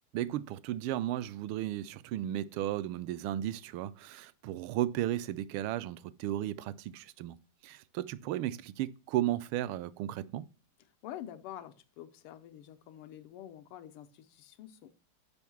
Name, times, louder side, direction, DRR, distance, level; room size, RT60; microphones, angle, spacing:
voice 1, 0.1-7.4 7.6-10.5, right 13 dB, 80° right, 1.3 m, -34 dB
voice 2, 11.0-15.0, left 11 dB, 90° left, 1.7 m, -47 dB
7.1 x 5.4 x 6.0 m
omnidirectional pair, 2.4 m